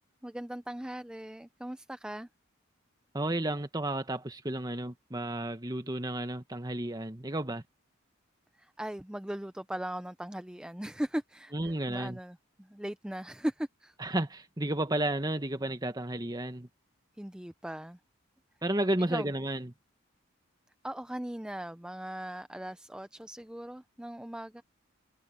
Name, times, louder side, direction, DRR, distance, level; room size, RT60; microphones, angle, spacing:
voice 1, 0.2-2.3 8.6-13.9 17.2-18.0 19.1-19.3 20.8-24.6, right 1 dB, 5° right, 0.4 m, -38 dB
voice 2, 3.1-7.6 11.5-12.2 14.0-16.7 18.6-19.7, right 1 dB, 20° right, 1.4 m, -32 dB
head